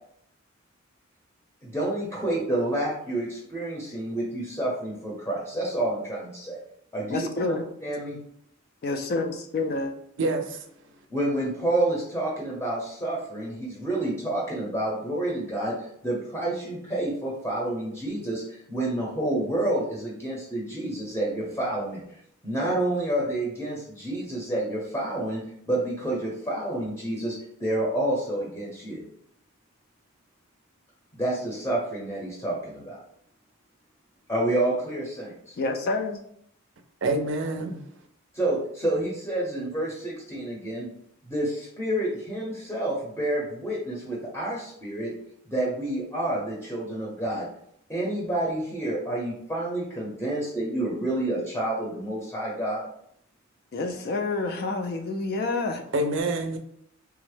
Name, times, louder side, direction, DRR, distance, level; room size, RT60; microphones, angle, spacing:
voice 1, 1.6-6.6 6.9-7.5 7.8-8.2 11.1-22.0 22.4-25.4 25.7-29.0 31.1-33.0 34.3-35.5 38.3-40.9 41.3-45.1 45.5-47.5 47.9-52.9, right 1 dB, 10° left, 0.7 m, -29 dB
voice 2, 7.1-7.7 8.8-9.9 35.6-36.2 53.7-55.8, left 3 dB, 50° left, 0.3 m, -28 dB
voice 3, 10.2-10.6 37.0-37.8 55.9-56.6, right 2 dB, 60° right, 0.4 m, -26 dB
3.4 x 2.0 x 3.2 m
head